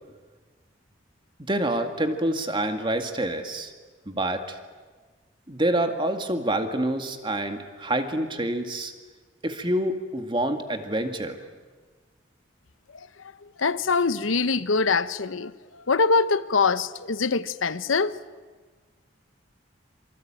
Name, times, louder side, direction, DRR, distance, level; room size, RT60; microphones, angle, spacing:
voice 1, 1.5-3.7 4.1-4.6 5.5-8.9 9.4-11.4, right 1 dB, 25° right, 2.1 m, -27 dB
voice 2, 13.6-15.5 15.9-18.2, left 4 dB, 90° left, 0.9 m, -23 dB
26.5 x 24.5 x 9.0 m
head